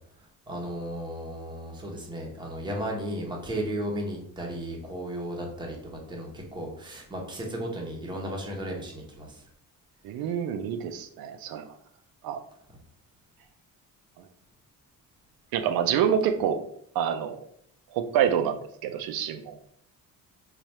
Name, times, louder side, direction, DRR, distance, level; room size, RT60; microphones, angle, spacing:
voice 1, 0.5-9.4, right 1 dB, 15° right, -1 dB, 0.8 m, -35 dB
voice 2, 10.0-11.7 12.2-12.4 15.5-16.6 16.9-17.4 17.9-19.6, right 8 dB, 90° right, 7 dB, 0.5 m, -27 dB
3.2 x 2.3 x 4.1 m, 0.66 s
cardioid pair, 155°, 35 cm